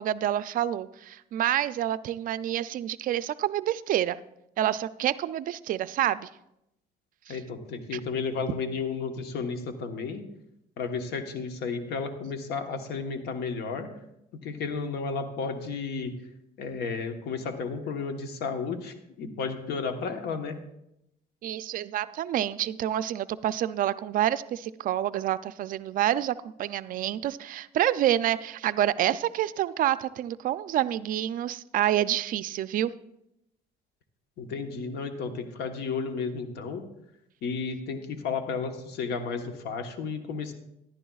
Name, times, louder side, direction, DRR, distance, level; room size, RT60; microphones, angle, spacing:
voice 1, 0.0-4.2 4.6-6.3 7.3-7.4 7.9-8.0 21.4-32.9, right 12 dB, 55° right, 15 dB, 0.4 m, -28 dB
voice 2, 7.3-10.2 10.8-13.9 14.4-16.1 16.6-20.6 34.4-36.8 37.4-40.5, left 5 dB, 75° left, 7 dB, 1.1 m, -33 dB
14.0 x 11.0 x 2.4 m, 0.83 s
cardioid pair, 110°, 17 cm